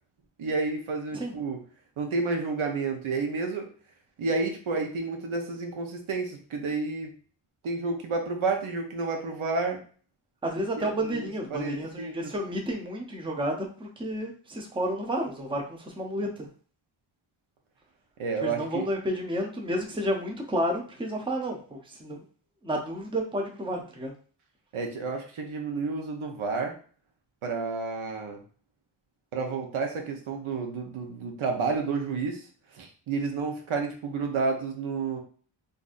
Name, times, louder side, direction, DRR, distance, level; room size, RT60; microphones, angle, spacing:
voice 1, 0.4-1.6 2.0-3.7 4.2-7.1 7.6-9.8 10.8-12.3 18.2-18.9 24.7-26.7 27.4-28.4 29.3-32.4 32.8-35.2, right 4 dB, 85° right, 3 dB, 0.9 m, -30 dB
voice 2, 10.4-16.5 18.4-22.2 22.6-24.1, equal, 10° right, 1 dB, 0.6 m, -31 dB
3.9 x 2.6 x 2.5 m, 0.42 s
wide cardioid pair, 140°, 48 cm